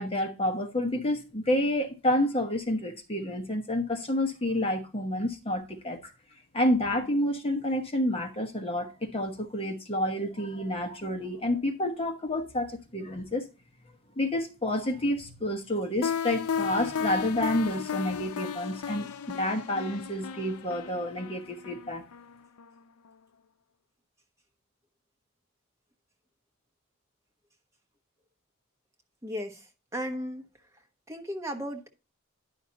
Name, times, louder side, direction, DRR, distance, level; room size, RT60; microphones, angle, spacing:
voice 1, 0.0-6.1 6.5-13.5 14.2-22.0, left 1 dB, 25° left, 1.1 m, -29 dB
sound 1, 16.0-22.8, left 7 dB, 90° left, 0.5 m, -34 dB
voice 2, 29.2-30.5 31.1-31.9, equal, 15° right, 1.1 m, -35 dB
11.0 x 5.8 x 2.8 m
head